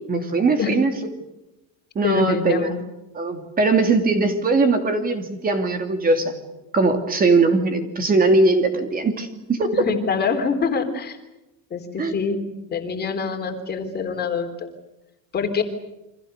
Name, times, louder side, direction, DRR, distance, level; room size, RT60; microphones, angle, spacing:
voice 1, 0.1-0.9 1.9-2.7 3.1-6.4 6.7-9.8 12.0-12.1, right 3 dB, 25° right, 6 dB, 2.8 m, -20 dB
voice 2, 2.0-2.8 9.7-11.2 11.7-12.4 12.7-14.7 15.3-15.6, left 5 dB, 25° left, 6 dB, 3.6 m, -25 dB
29.5 x 25.0 x 6.7 m, 0.94 s
cardioid pair, 160°, 37 cm